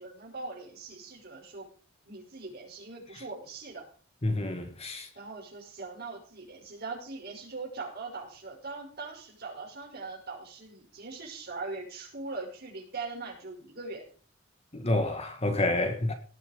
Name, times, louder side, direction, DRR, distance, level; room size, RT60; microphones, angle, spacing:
voice 1, 0.0-1.7 2.0-3.9 5.1-14.1, right 3 dB, 50° right, 5.7 m, -41 dB
voice 2, 4.2-5.1 14.7-16.1, left 2 dB, 30° left, 1.6 m, -28 dB
18.5 x 7.0 x 5.2 m
head